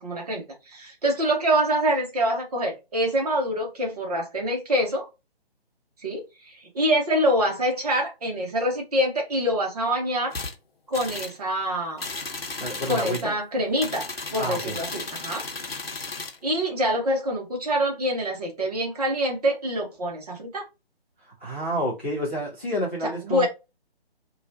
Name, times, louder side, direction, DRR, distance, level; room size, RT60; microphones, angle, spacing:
voice 1, 0.0-5.0 6.0-6.2 6.5-10.3 10.9-12.0 12.9-14.1 14.3-15.4 16.4-20.6 23.0-23.5, equal, 40° right, 1.0 m, -25 dB
sound 1, 10.3-10.5 10.9-11.4 12.0-13.3 13.8-16.4, left 3 dB, 65° left, 0.9 m, -34 dB
voice 2, 12.6-13.3 14.4-14.8 21.4-23.5, equal, 10° left, 0.4 m, -29 dB
2.9 x 2.3 x 2.6 m
figure-of-eight pair, 145°, 31 cm